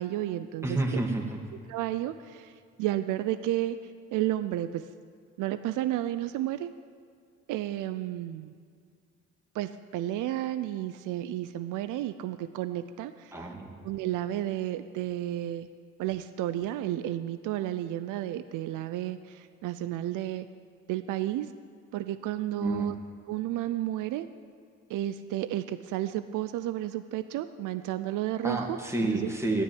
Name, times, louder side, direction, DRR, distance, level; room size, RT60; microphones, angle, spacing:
voice 1, 0.0-1.0 1.7-3.8 4.1-4.9 5.4-6.7 7.5-8.5 9.5-13.5 13.8-15.7 16.0-20.5 20.9-21.5 21.9-23.0 23.3-24.3 24.9-28.8 29.1-29.3, right 13 dB, 90° right, 12 dB, 0.5 m, -32 dB
voice 2, 0.6-1.4 13.3-13.7 22.6-22.9 28.4-29.6, right 2 dB, 10° right, 1 dB, 2.2 m, -29 dB
13.0 x 10.0 x 9.4 m, 2.1 s
cardioid pair, 90°, 30 cm